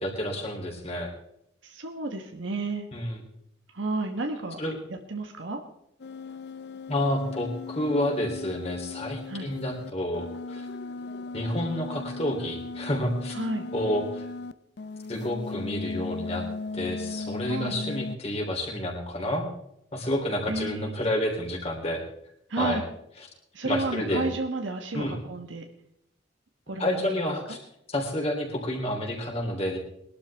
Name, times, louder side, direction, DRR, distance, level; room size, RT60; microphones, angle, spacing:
voice 1, 0.0-1.1 2.9-3.2 4.6-4.8 6.9-10.7 11.3-13.4 13.7-14.3 15.1-16.4 16.7-19.5 19.9-22.0 22.6-22.8 23.6-24.2 24.9-25.2 26.8-27.6 27.9-29.8, left 1 dB, 35° left, 1 dB, 3.4 m, -29 dB
voice 2, 1.6-2.9 3.7-4.6 4.9-5.6 9.3-9.5 13.3-13.7 17.4-17.8 20.5-20.9 22.5-22.9 23.5-25.6 26.7-27.2, right 2 dB, 85° right, 4 dB, 1.3 m, -31 dB
sound 1, 6.0-14.5 14.8-18.2, left 3 dB, 60° left, 0.5 m, -37 dB
22.0 x 12.0 x 3.5 m, 0.77 s
head